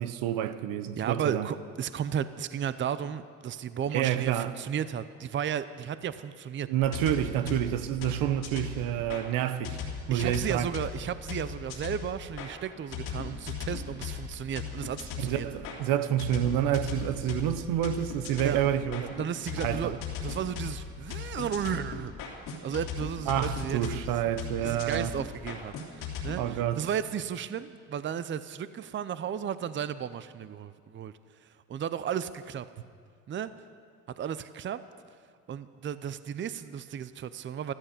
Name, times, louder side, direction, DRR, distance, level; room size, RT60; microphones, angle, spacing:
voice 1, 0.0-1.5 3.9-4.5 6.7-9.8 10.1-10.7 15.2-19.2 19.6-19.9 23.3-25.1 26.4-26.9, right 11 dB, 80° right, 0.9 m, -28 dB
voice 2, 1.0-6.7 10.1-15.5 18.4-18.6 19.0-22.3 22.6-24.3 24.6-31.1 31.4-32.7 33.3-33.5 34.2-34.8 35.5-37.7, right 8 dB, 35° right, 0.6 m, -34 dB
sound 1, 6.8-9.2 9.6-12.5 12.9-26.4, left 6 dB, 85° left, 2.9 m, -38 dB
14.5 x 13.0 x 6.8 m
supercardioid pair, 90°, 34 cm